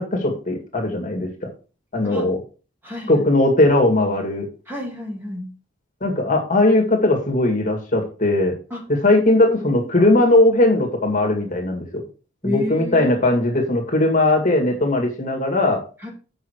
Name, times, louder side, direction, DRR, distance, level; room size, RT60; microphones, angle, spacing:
voice 1, 0.0-1.5 1.9-2.4 3.1-4.5 6.0-8.6 8.9-12.0 12.4-15.8, left 2 dB, 35° left, 1 dB, 2.2 m, -19 dB
voice 2, 2.8-3.2 4.7-5.5 8.7-8.9 9.2-9.4 10.0-10.1 12.4-13.3 16.0-16.1, left 1 dB, 10° right, -2 dB, 2.6 m, -30 dB
7.9 x 6.3 x 4.7 m, 0.34 s
head